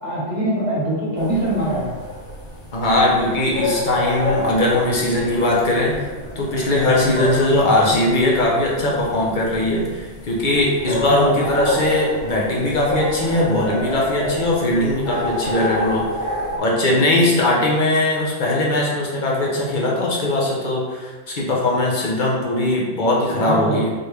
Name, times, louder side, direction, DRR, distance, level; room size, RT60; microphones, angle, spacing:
voice 1, 0.0-1.9 10.8-11.5 17.3-17.5 23.3-23.9, right 1 dB, 40° right, -6 dB, 1.4 m, -24 dB
sound 1, 1.2-16.6, left 1 dB, 85° left, 1.3 m, -29 dB
voice 2, 2.7-6.1 6.3-16.1 16.6-23.9, left 1 dB, 45° left, -3 dB, 1.0 m, -20 dB
4.4 x 3.4 x 3.1 m, 1.3 s
omnidirectional pair, 1.2 m